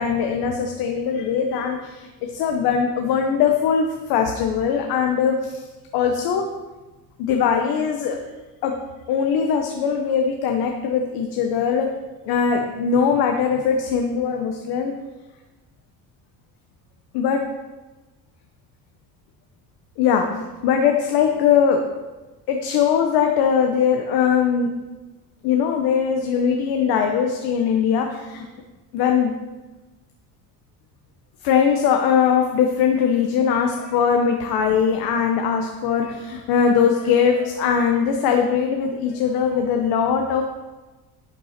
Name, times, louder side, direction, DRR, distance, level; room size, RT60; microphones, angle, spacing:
voice 1, 0.0-5.7 5.9-6.4 7.2-8.2 8.6-8.7 9.1-11.9 12.2-14.9 17.1-17.4 20.0-21.8 22.5-24.7 25.4-28.5 28.9-29.3 31.4-40.4, left 7 dB, 80° left, 3 dB, 1.0 m, -21 dB
11.0 x 6.7 x 4.3 m, 1.2 s
cardioid pair, 145°, 38 cm